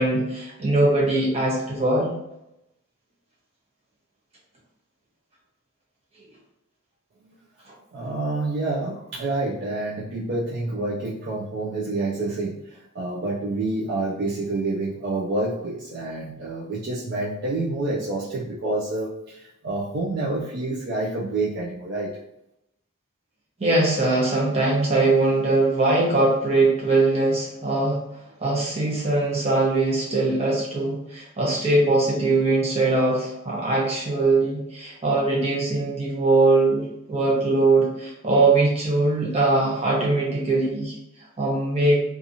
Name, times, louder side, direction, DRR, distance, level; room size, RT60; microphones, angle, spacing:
voice 1, 0.0-2.1 23.6-28.0 28.4-40.9 41.4-42.0, right 2 dB, 30° right, -4 dB, 0.8 m, -21 dB
voice 2, 7.9-22.2, right 2 dB, 50° right, -5 dB, 0.4 m, -28 dB
2.8 x 2.4 x 2.6 m, 0.86 s
head